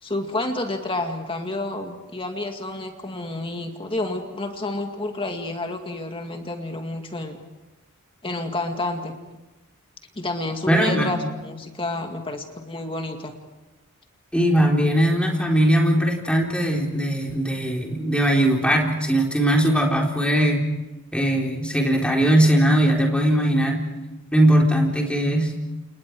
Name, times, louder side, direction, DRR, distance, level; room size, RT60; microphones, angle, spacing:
voice 1, 0.0-7.4 8.2-9.1 10.2-13.4, left 2 dB, 25° left, 4 dB, 2.1 m, -29 dB
voice 2, 10.7-11.1 14.3-20.6 21.1-23.9 24.3-25.5, right 1 dB, 5° left, -1 dB, 4.0 m, -20 dB
29.5 x 29.0 x 4.8 m, 1.1 s
head